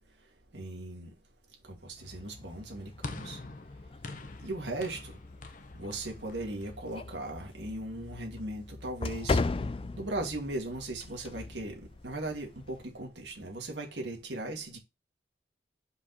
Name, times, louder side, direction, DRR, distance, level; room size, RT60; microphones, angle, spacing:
voice 1, 0.5-1.1 1.7-3.4 4.4-5.1 5.8-9.4 10.0-11.8 12.0-14.8, right 2 dB, 85° right, 2.4 m, -38 dB
sound 1, 2.0-12.9, left 3 dB, 30° left, 0.4 m, -39 dB
sound 2, 3.0-7.5, left 2 dB, 50° left, 0.9 m, -45 dB
5.4 x 5.0 x 4.1 m
head